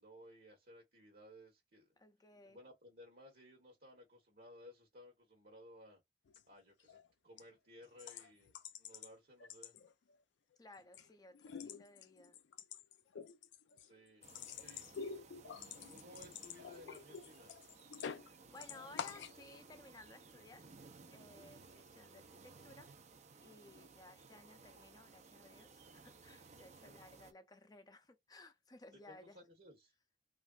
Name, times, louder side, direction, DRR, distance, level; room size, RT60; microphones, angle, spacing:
voice 1, 0.0-1.9 2.4-6.0 6.5-9.7 13.7-14.3 14.6-14.9 15.4-17.6 26.8-27.0 29.0-29.9, equal, 60° right, 1.1 m, -59 dB
voice 2, 2.0-2.6 10.6-12.4 18.2-20.7 21.1-23.0 23.4-29.4, left 2 dB, 20° left, 0.5 m, -59 dB
sound 1, 6.3-6.4 6.8-7.1 7.4-7.5 8.0-9.1 9.4-10.2 10.5-11.1 11.3-18.3 18.6-19.4, left 7 dB, 85° left, 0.4 m, -48 dB
sound 2, 14.2-27.3, right 4 dB, 40° right, 0.5 m, -59 dB
3.1 x 2.5 x 2.3 m
head